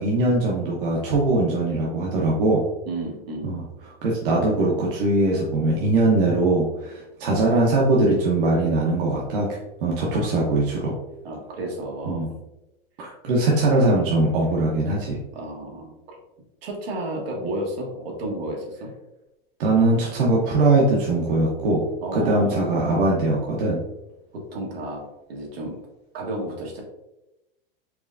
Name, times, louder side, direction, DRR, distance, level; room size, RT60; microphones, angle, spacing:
voice 1, 0.0-2.6 3.4-3.6 4.0-10.9 12.1-12.3 13.0-15.2 19.6-21.8 22.1-23.8, right 2 dB, 65° right, -3 dB, 0.9 m, -21 dB
voice 2, 2.8-3.5 11.2-12.3 15.3-16.2 16.6-18.9 22.0-22.6 24.3-25.8 26.1-26.8, right 1 dB, 85° right, 0 dB, 1.5 m, -32 dB
4.7 x 3.2 x 2.6 m, 0.94 s
supercardioid pair, 175°, 29 cm